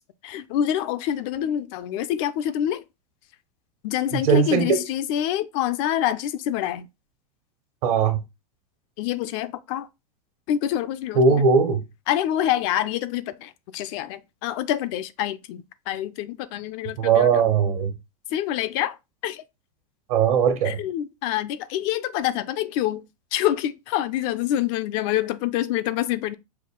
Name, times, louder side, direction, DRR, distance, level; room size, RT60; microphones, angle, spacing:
voice 1, 0.2-2.8 3.8-6.9 9.0-9.9 10.5-11.2 12.1-17.4 18.3-19.0 19.2-19.4 20.6-23.1 23.3-26.3, left 11 dB, 50° left, 0.5 m, -26 dB
voice 2, 4.1-4.8 7.8-8.2 11.1-11.8 17.0-17.9 20.1-20.8, right 6 dB, 65° right, 1.3 m, -19 dB
5.6 x 2.3 x 3.6 m
hypercardioid pair, 100°, 20 cm